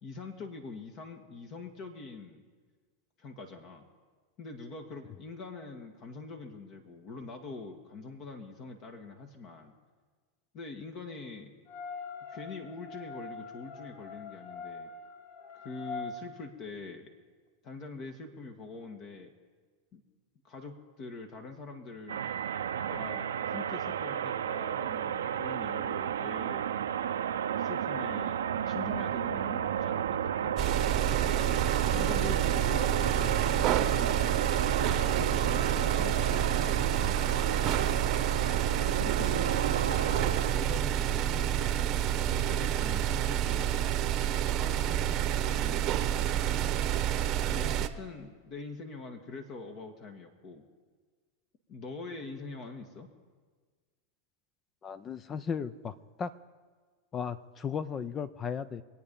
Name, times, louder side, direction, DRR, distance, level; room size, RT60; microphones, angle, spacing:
voice 1, 0.0-2.4 3.2-3.9 4.4-9.7 10.5-11.5 12.3-14.9 15.6-17.1 17.6-19.3 19.9-20.0 20.4-22.2 22.9-26.6 27.6-30.5 31.9-34.4 35.0-37.7 38.9-43.8 44.5-46.4 47.5-50.6 51.7-53.1, left 4 dB, 45° left, 5 dB, 1.6 m, -44 dB
sound 1, 11.7-16.2, left 5 dB, 70° left, 2.0 m, -43 dB
sound 2, 22.1-40.5, right 9 dB, 90° right, 0.6 m, -32 dB
sound 3, 30.6-47.9, right 11 dB, 45° right, 0.9 m, -29 dB
voice 2, 54.8-56.3 57.1-58.8, left 6 dB, 30° left, 15 dB, 0.6 m, -36 dB
25.0 x 8.7 x 5.4 m, 1.5 s
hypercardioid pair, 115°, 0 cm